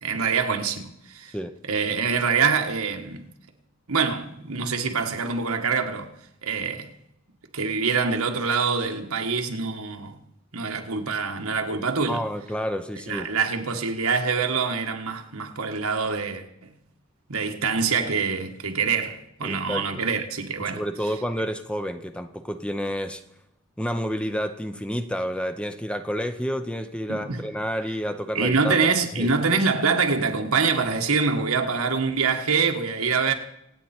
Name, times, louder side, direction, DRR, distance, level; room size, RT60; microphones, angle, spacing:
voice 1, 0.0-1.3 1.7-3.2 3.9-6.1 6.4-6.9 7.5-10.2 10.5-12.2 13.1-16.7 17.3-20.8 27.1-27.4 28.3-33.3, right 5 dB, 80° right, 1.5 m, -25 dB
voice 2, 12.1-13.3 19.4-20.0 20.6-23.2 23.8-28.7 29.1-29.3, equal, 5° left, 0.7 m, -29 dB
26.0 x 8.9 x 4.4 m
head